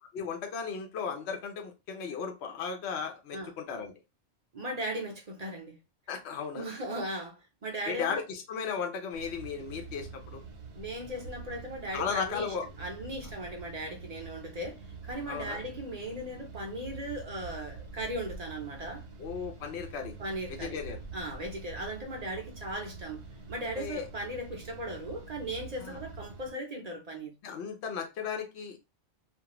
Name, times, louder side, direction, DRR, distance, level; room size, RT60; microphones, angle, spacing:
voice 1, 0.1-3.9 6.1-6.7 7.9-10.4 11.9-12.7 15.3-15.6 19.2-20.2 20.5-21.0 23.8-24.1 25.8-26.0 27.4-28.8, left 6 dB, 65° left, 0.9 m, -35 dB
voice 2, 4.5-5.8 6.6-8.2 10.8-19.0 20.2-20.8 21.1-23.2 23.5-27.3, right 1 dB, 45° right, 0.6 m, -38 dB
sound 1, 9.1-26.5, right 4 dB, 70° right, 1.0 m, -46 dB
2.5 x 2.4 x 2.9 m
omnidirectional pair, 1.3 m